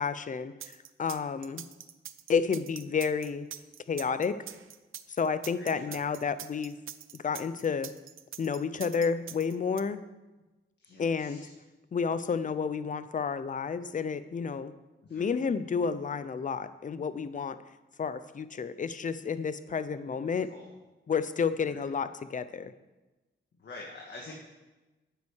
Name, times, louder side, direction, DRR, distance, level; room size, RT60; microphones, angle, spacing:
voice 1, 0.0-1.6 2.3-3.5 3.9-4.4 5.2-6.7 7.1-7.9 8.4-10.0 11.0-11.4 11.9-14.7 15.1-17.6 18.0-20.5 21.1-22.7, left 5 dB, 40° left, 13 dB, 0.6 m, -31 dB
sound 1, 0.6-9.8, right 10 dB, 85° right, 0.6 m, -44 dB
voice 2, 5.5-6.1 10.8-11.5 15.0-15.3 20.5-20.7 21.6-21.8 23.6-24.3, left 2 dB, 60° left, -1 dB, 1.6 m, -47 dB
8.8 x 8.7 x 6.4 m, 1.1 s
wide cardioid pair, 120°, 20 cm